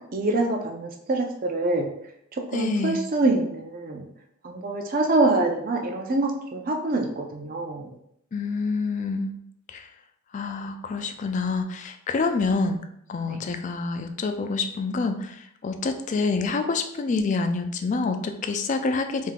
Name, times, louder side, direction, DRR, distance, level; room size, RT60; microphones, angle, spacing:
voice 1, 0.1-1.9 2.5-4.0 4.4-7.9 13.3-13.4, right 2 dB, 40° right, 2 dB, 0.6 m, -25 dB
voice 2, 2.5-3.0 8.3-9.4 9.7-9.9 10.3-12.8 13.1-19.3, left 4 dB, 35° left, 7 dB, 0.3 m, -27 dB
3.5 x 2.7 x 3.6 m, 0.74 s
head